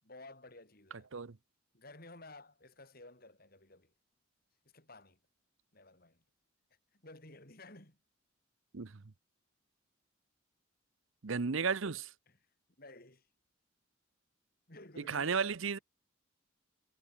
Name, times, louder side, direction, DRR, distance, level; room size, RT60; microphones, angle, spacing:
voice 1, 0.0-1.1 1.7-3.9 4.7-5.2 5.7-6.2 6.9-8.0 12.3-12.4 12.8-13.3 14.7-15.4, left 2 dB, 45° left, 6.3 m, -54 dB
voice 2, 11.2-12.1 15.1-15.8, right 5 dB, 75° right, 0.8 m, -33 dB
head